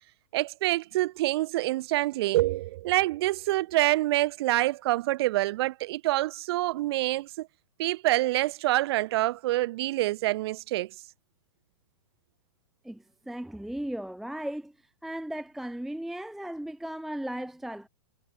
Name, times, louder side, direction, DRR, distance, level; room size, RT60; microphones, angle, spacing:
voice 1, 0.3-7.5 7.8-10.9, right 17 dB, 50° right, 0.4 m, -26 dB
voice 2, 12.8-14.7 15.0-17.9, right 1 dB, ahead, 0.6 m, -36 dB
hypercardioid pair, 135°, 16 cm